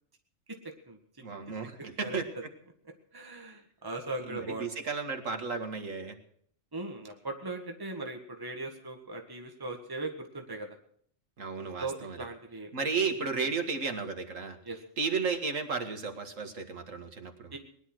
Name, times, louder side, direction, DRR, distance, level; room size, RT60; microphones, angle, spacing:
voice 1, 1.2-2.3 4.3-6.2 11.4-12.2 12.7-14.6 15.0-17.5, right 5 dB, 85° right, 5 dB, 2.2 m, -33 dB
voice 2, 3.1-4.7 6.7-10.7 11.6-12.7 13.3-13.5 14.6-14.8 17.5-17.6, right 2 dB, 15° right, 3 dB, 1.7 m, -39 dB
20.0 x 11.0 x 6.2 m, 0.64 s
omnidirectional pair, 1.3 m